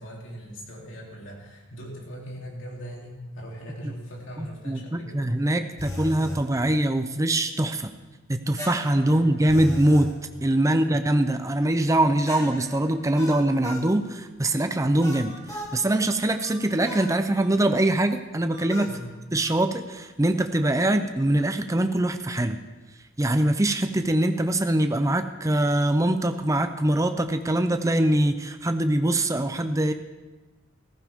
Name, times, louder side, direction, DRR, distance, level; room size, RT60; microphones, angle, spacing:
voice 1, 0.0-5.3 9.1-9.3 10.7-11.0 18.8-19.1, equal, 65° left, -2 dB, 3.2 m, -40 dB
voice 2, 4.4-7.9 8.3-10.1 10.4-14.1 14.4-18.9 19.3-22.6 23.2-29.9, right 1 dB, 15° right, 8 dB, 0.6 m, -23 dB
sound 1, 5.8-6.4 8.6-10.1 12.3-13.9 15.0-15.8 16.9-17.2 18.7-19.0, left 1 dB, 15° left, 1.7 m, -36 dB
sound 2, 15.3-15.4 15.9-16.0 16.4-16.6 17.3-17.5 18.5-18.7 19.4-19.6, left 3 dB, 35° right, 1.3 m, -49 dB
15.0 x 14.5 x 3.6 m, 1.2 s
head